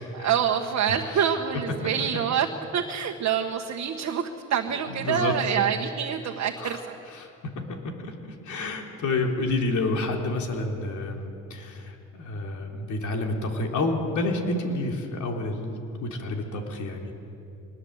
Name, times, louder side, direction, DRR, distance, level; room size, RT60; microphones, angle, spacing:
voice 1, 0.0-2.5 2.7-6.9, right 8 dB, 60° right, 2 dB, 1.5 m, -26 dB
voice 2, 4.9-5.4 6.6-6.8 7.1-17.1, left 2 dB, 75° left, 1 dB, 3.5 m, -29 dB
24.5 x 20.5 x 8.1 m, 2.7 s
cardioid pair, 90°, 30 cm